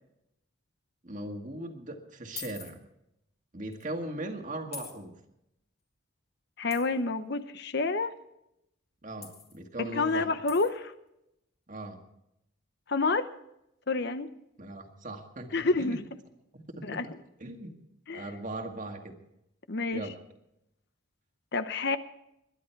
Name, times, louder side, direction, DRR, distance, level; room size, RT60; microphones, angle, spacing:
voice 1, 1.0-2.8 3.5-5.2 9.0-10.3 11.7-12.0 14.6-16.0 16.5-17.0 17.4-17.8 18.1-19.2 19.9-20.1, right 1 dB, 35° right, 4 dB, 2.0 m, -39 dB
sound 1, 2.4-2.7 3.7-3.8 4.7-5.0 6.7-6.9 9.2-9.6 10.5-10.7, left 7 dB, 30° left, 2.2 m, -43 dB
voice 2, 6.6-8.1 9.8-10.9 12.9-13.3 13.9-14.3 15.5-16.0 16.8-17.2 18.1-18.3 19.7-20.1 21.5-22.0, left 3 dB, 50° left, 11 dB, 0.8 m, -29 dB
22.5 x 11.0 x 4.6 m, 0.83 s
head